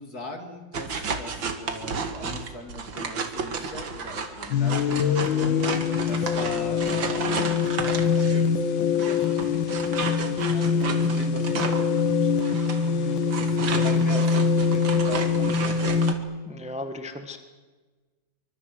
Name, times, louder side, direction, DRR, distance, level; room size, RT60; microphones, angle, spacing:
voice 1, 0.0-5.8 6.1-7.5 8.2-12.4 13.4-15.7, left 2 dB, 50° left, 5 dB, 3.6 m, -40 dB
sound 1, 0.7-8.5 9.0-16.2, right 5 dB, 85° right, 2.8 m, -33 dB
sound 2, 4.5-16.1, left 6 dB, 85° left, 1.9 m, -24 dB
voice 2, 12.8-13.2 16.4-17.4, left 1 dB, 5° right, 8 dB, 1.3 m, -37 dB
25.0 x 24.5 x 7.9 m, 1.3 s
omnidirectional pair, 2.0 m